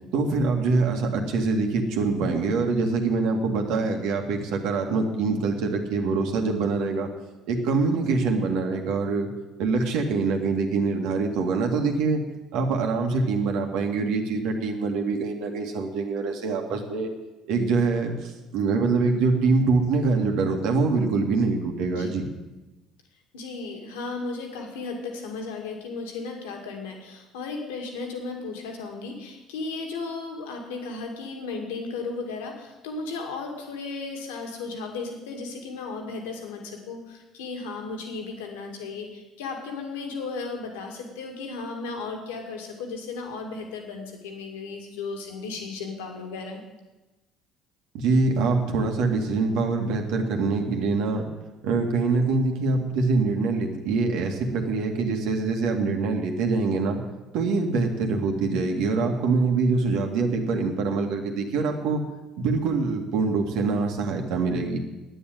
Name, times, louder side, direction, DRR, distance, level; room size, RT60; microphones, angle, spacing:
voice 1, 0.1-7.1 7.5-9.3 9.6-12.2 12.5-17.1 17.5-22.3 47.9-51.3 51.6-57.0 57.3-62.0 62.4-64.8, right 4 dB, 70° right, 3 dB, 2.1 m, -24 dB
voice 2, 23.3-46.6, left 4 dB, 80° left, 2 dB, 2.4 m, -35 dB
10.0 x 9.5 x 9.3 m, 1.1 s
hypercardioid pair, 60°, 0 cm